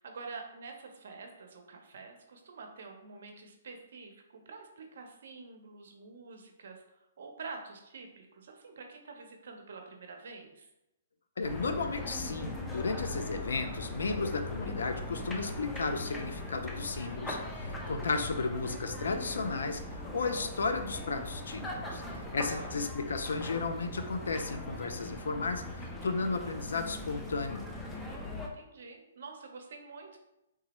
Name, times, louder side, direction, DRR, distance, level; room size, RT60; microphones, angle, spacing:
voice 1, 0.0-6.8 7.2-10.7 22.0-22.8 28.4-30.2, right 4 dB, 65° right, 4 dB, 0.5 m, -47 dB
voice 2, 11.4-21.6 21.9-22.0 22.3-27.7, left 4 dB, 85° left, 7 dB, 0.4 m, -34 dB
sound 1, 11.4-28.5, left 1 dB, 10° left, 0.3 m, -40 dB
3.4 x 2.0 x 2.9 m, 0.89 s
hypercardioid pair, 160°, 0 cm